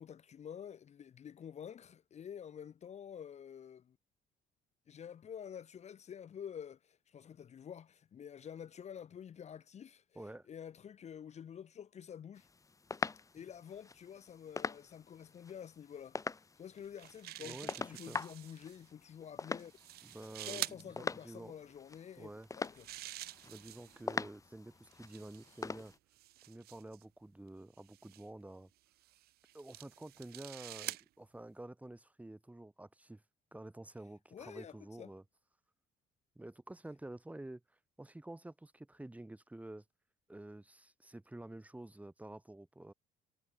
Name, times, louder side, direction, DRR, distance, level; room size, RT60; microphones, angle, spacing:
voice 1, 0.0-4.0 4.9-12.5 13.3-19.7 20.5-22.3 22.6-22.9 25.5-25.8 34.3-35.1, left 8 dB, 40° left, 1.1 m, -49 dB
voice 2, 10.1-10.5 17.4-18.2 20.0-21.6 22.2-22.5 23.4-25.9 26.5-28.7 29.5-33.2 33.5-35.2 36.4-39.8 40.3-42.9, right 1 dB, 10° right, 2.5 m, -50 dB
sound 1, 12.4-26.0, left 4 dB, 20° left, 0.9 m, -44 dB
sound 2, 16.8-18.8 19.6-20.8 22.4-24.1 24.9-27.0 27.9-28.2 29.0-31.0, right 16 dB, 70° right, 0.6 m, -47 dB
cardioid pair, 110°, 17 cm